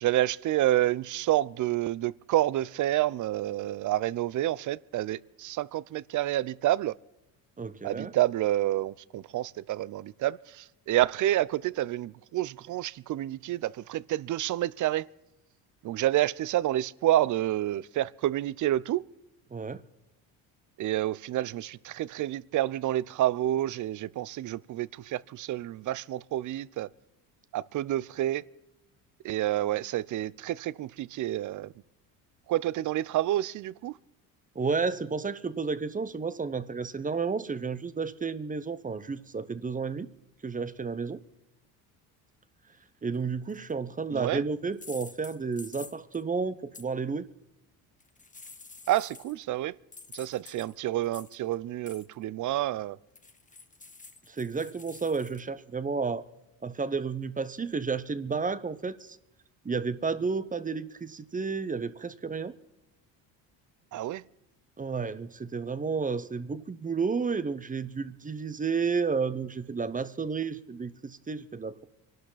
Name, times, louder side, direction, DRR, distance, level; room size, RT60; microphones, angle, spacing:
voice 1, 0.0-6.9 7.8-15.1 15.8-19.1 20.8-26.9 27.5-28.4 29.2-31.7 32.5-33.9 44.1-44.4 48.9-49.8 50.1-53.0 63.9-64.2, right 14 dB, 45° right, 0.6 m, -29 dB
voice 2, 7.6-8.1 19.5-19.8 34.5-40.1 40.4-41.2 43.0-47.3 54.3-56.2 56.6-59.2 59.6-62.5 64.8-71.8, right 5 dB, 20° right, 0.8 m, -31 dB
sound 1, 43.5-43.7 44.7-46.2 46.7-46.8 48.0-49.4 49.9-51.5 51.9-52.1 53.2-55.4, left 4 dB, 20° left, 1.2 m, -48 dB
24.0 x 12.0 x 4.0 m
supercardioid pair, 85°, 42 cm